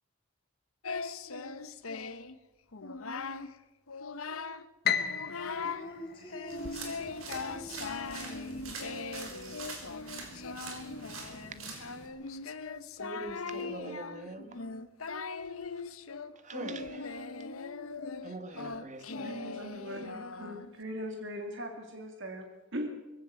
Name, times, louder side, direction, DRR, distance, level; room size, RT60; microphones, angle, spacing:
Singing, 0.8-2.3 2.7-3.5 3.9-4.7 5.0-5.9 6.3-20.8, left 4 dB, 90° left, 1.0 m, -40 dB
Piano, 4.8-7.1, left 8 dB, 50° left, 1.2 m, -34 dB
voice 1, 5.6-8.4, equal, 25° left, -1 dB, 2.5 m, -46 dB
sound 1, 6.5-12.1, right 3 dB, 80° right, 5.1 m, -44 dB
voice 2, 13.0-14.6 16.4-17.3 18.2-19.4, right 2 dB, 35° right, 10 dB, 1.5 m, -43 dB
voice 3, 19.2-22.9, equal, 60° right, 4 dB, 2.1 m, -40 dB
21.0 x 16.0 x 7.7 m, 1.1 s
head